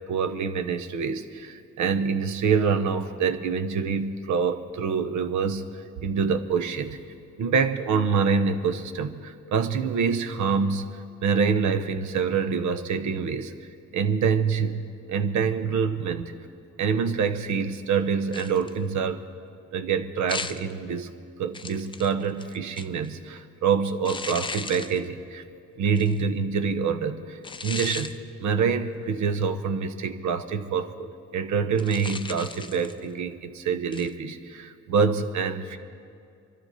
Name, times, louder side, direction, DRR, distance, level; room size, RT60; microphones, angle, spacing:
voice 1, 0.1-5.7 6.0-7.0 7.4-10.9 11.2-13.5 13.9-16.3 16.8-19.2 19.7-21.1 21.4-25.4 25.8-35.8, right 5 dB, 75° right, 9 dB, 0.9 m, -26 dB
sound 1, 18.3-18.8 20.3-20.7 21.5-23.1 24.0-25.0 25.9-26.2 27.4-28.2 31.8-33.0 33.9-34.1, left 4 dB, 15° left, 0.5 m, -36 dB
23.0 x 12.5 x 4.1 m, 2.4 s
cardioid pair, 90°, 30 cm